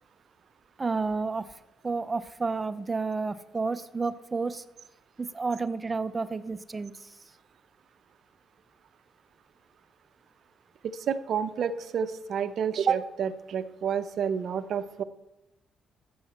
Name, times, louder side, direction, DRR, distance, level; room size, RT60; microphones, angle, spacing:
voice 1, 0.8-4.6 5.2-7.2, right 4 dB, 25° right, 13 dB, 0.6 m, -31 dB
voice 2, 10.9-15.0, right 7 dB, 65° right, 11 dB, 0.7 m, -29 dB
14.0 x 7.0 x 4.3 m, 0.93 s
cardioid pair, 90°, 0 cm